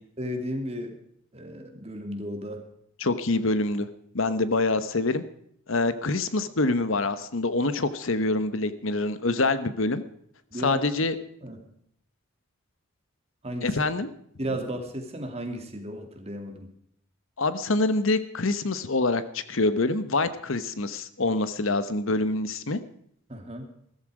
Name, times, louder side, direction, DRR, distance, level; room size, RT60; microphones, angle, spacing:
voice 1, 0.2-1.0 1.3-2.7 10.5-10.8 11.4-11.6 13.4-13.8 14.4-16.7 23.3-23.7, equal, 30° right, 5 dB, 2.4 m, -34 dB
voice 2, 3.0-3.9 4.1-5.2 5.7-10.0 10.6-11.1 13.6-14.1 17.4-22.8, left 2 dB, 65° left, 13 dB, 1.0 m, -25 dB
15.5 x 14.0 x 4.9 m, 0.69 s
head